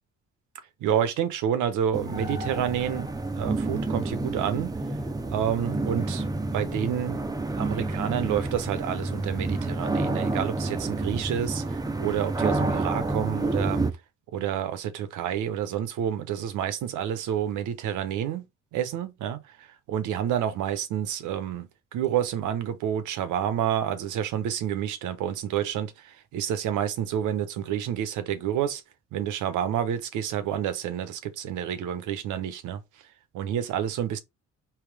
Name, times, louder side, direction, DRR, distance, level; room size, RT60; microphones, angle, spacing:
voice 1, 0.8-4.7 5.3-6.3 6.5-7.3 7.6-13.8 14.3-28.8 29.1-32.8 33.3-34.2, right 9 dB, 90° right, 0.9 m, -29 dB
sound 1, 1.9-13.9, right 2 dB, 15° right, 0.6 m, -29 dB
3.5 x 2.9 x 4.7 m
cardioid pair, 90°, 30 cm